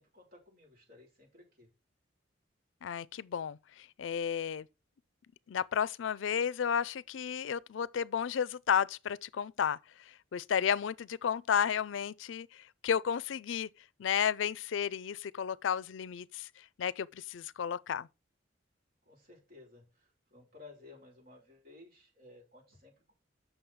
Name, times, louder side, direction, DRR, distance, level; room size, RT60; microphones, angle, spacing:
voice 1, 0.0-1.7 19.1-23.1, left 3 dB, 55° right, 5.4 m, -56 dB
voice 2, 2.8-4.7 5.5-9.8 10.1-13.7 14.0-16.5 16.8-18.1, left 8 dB, 80° left, 0.4 m, -32 dB
7.8 x 6.3 x 4.6 m
head